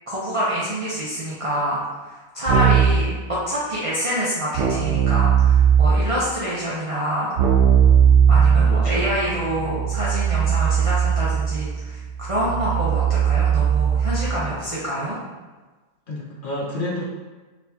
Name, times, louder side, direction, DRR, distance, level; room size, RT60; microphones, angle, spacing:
voice 1, 0.1-7.4 8.3-12.0 12.3-15.2, equal, 30° right, -8 dB, 0.7 m, -26 dB
Keyboard (musical), 2.5-3.1 4.5-6.1 7.4-14.4, right 8 dB, 65° right, 0.8 m, -18 dB
voice 2, 8.6-9.1 16.1-17.0, left 1 dB, 55° left, -4 dB, 0.6 m, -30 dB
4.3 x 3.4 x 2.8 m, 1.3 s
omnidirectional pair, 1.5 m